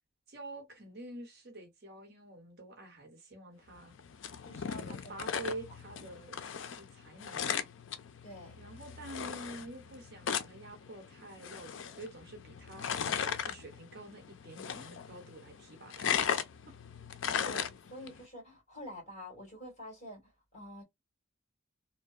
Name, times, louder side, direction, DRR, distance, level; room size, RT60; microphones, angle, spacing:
voice 1, 0.3-3.9 4.6-6.4 6.7-7.7 8.6-12.9 13.4-16.2 16.7-16.8, right 2 dB, 50° right, 0.9 m, -47 dB
sound 1, 3.8-18.2, left 7 dB, 65° left, 0.4 m, -38 dB
voice 2, 4.4-5.5 8.2-8.7 17.4-20.2 20.5-20.8, left 1 dB, 35° left, 1.6 m, -48 dB
2.7 x 2.1 x 2.4 m
head